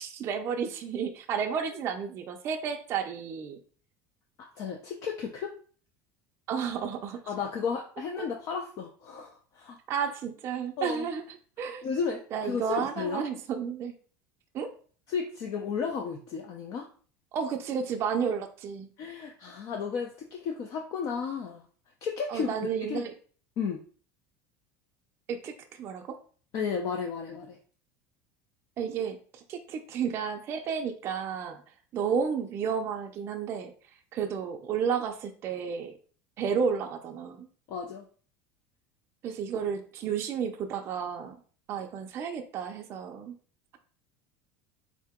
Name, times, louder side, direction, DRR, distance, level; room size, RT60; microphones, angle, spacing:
voice 1, 0.0-3.6 6.5-7.2 8.2-8.3 9.9-11.2 11.6-11.8 12.3-13.9 14.5-14.7 17.3-18.9 22.3-23.1 25.3-26.2 28.8-31.6 31.9-33.7 34.1-35.9 36.4-37.5 39.2-41.4 41.7-43.3, right 7 dB, 35° right, 3 dB, 0.4 m, -32 dB
voice 2, 4.6-5.5 7.3-9.8 10.8-11.1 11.8-13.2 15.1-16.9 19.0-21.7 22.0-22.5 22.8-23.0 23.6-23.8 26.5-27.6 37.7-38.1, left 6 dB, 45° left, 2 dB, 0.5 m, -33 dB
3.7 x 2.8 x 3.5 m, 0.42 s
cardioid pair, 145°, 7 cm